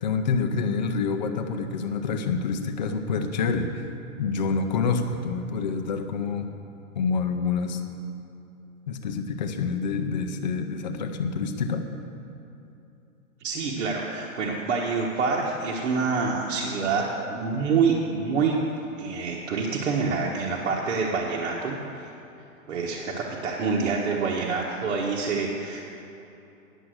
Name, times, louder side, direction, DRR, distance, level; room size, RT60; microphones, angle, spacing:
voice 1, 0.0-3.9 4.2-6.5 7.0-7.8 8.9-11.9, left 5 dB, 35° left, 5 dB, 0.5 m, -27 dB
voice 2, 13.4-18.6 19.0-22.1 22.7-25.9, right 4 dB, 65° right, -2 dB, 1.2 m, -27 dB
10.0 x 7.2 x 7.7 m, 2.8 s
hypercardioid pair, 175°, 41 cm